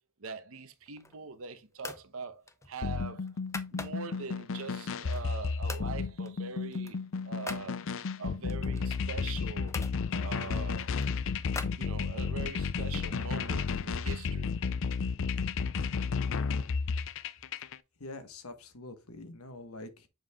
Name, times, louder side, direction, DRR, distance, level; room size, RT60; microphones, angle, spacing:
voice 1, 0.2-3.3 3.7-7.8 8.2-9.8 10.2-10.9 11.8-14.5, right 4 dB, 70° right, 0.9 m, -42 dB
sound 1, 0.8-1.3 1.8-2.1 2.5-4.2 4.7-5.4 5.7-5.9 6.2-7.7 8.5-10.0 10.5-12.4, left 3 dB, 15° left, 0.6 m, -44 dB
sound 2, 2.8-17.8, left 5 dB, 65° left, 0.5 m, -33 dB
voice 2, 18.0-20.1, left 2 dB, 85° left, 1.4 m, -45 dB
7.3 x 5.5 x 2.4 m
head